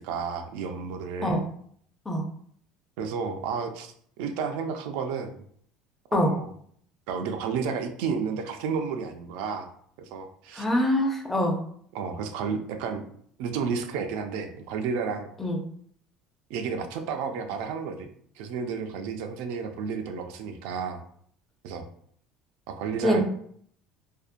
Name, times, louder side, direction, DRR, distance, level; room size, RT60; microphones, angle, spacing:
voice 1, 0.0-1.4 3.0-5.4 6.1-6.5 7.1-9.7 10.0-10.6 11.9-13.1 13.4-15.3 16.5-18.1 18.4-21.0 21.6-21.9 22.7-23.2, right 5 dB, 80° right, 6 dB, 0.3 m, -32 dB
voice 2, 10.6-11.6 15.4-15.6 23.0-23.2, equal, 10° left, 2 dB, 0.4 m, -24 dB
2.5 x 2.1 x 2.4 m, 0.62 s
cardioid pair, 150°, 2 cm